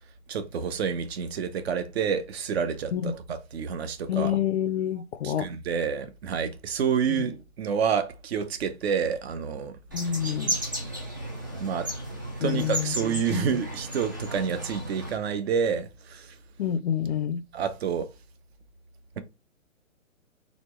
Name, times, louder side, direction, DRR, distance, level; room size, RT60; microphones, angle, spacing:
voice 1, 0.3-4.4 5.2-9.8 11.6-11.9 12.4-16.4 17.5-18.1, right 7 dB, 50° right, 0.8 m, -28 dB
voice 2, 4.1-5.5 7.1-7.2 9.9-10.5 12.4-12.9 13.3-13.5 16.6-17.4, left 9 dB, 55° left, 0.5 m, -27 dB
sound 1, 9.9-15.2, right 1 dB, 15° right, 0.3 m, -34 dB
4.2 x 3.0 x 3.1 m
hypercardioid pair, 140°, 40 cm